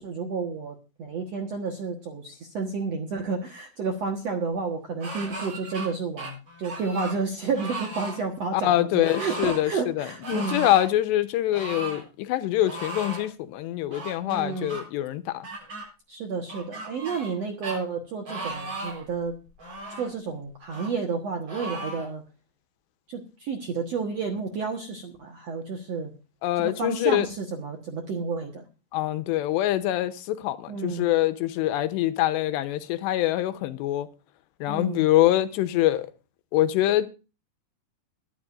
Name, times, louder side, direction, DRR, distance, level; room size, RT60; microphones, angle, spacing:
voice 1, 0.0-10.7 14.2-14.7 16.1-19.4 20.0-22.2 23.1-26.1 26.6-28.6 30.7-31.1 34.7-35.1, right 4 dB, 60° right, 1.7 m, -31 dB
sound 1, 5.0-5.9 6.2-7.2 7.5-8.2 9.0-9.6 10.2-10.9 11.5-12.0 12.6-13.3 13.9-14.8 15.4-15.8 16.5-17.4 17.6-17.8 18.3-19.0 19.6-20.1 20.7-20.9 21.5-22.1, right 2 dB, 35° right, 8.2 m, -36 dB
voice 2, 8.5-9.7 10.0-15.5 26.4-27.3 28.9-34.1 34.6-36.1 36.5-37.1, left 14 dB, 90° left, 3.0 m, -24 dB
22.5 x 11.5 x 2.6 m
omnidirectional pair, 4.9 m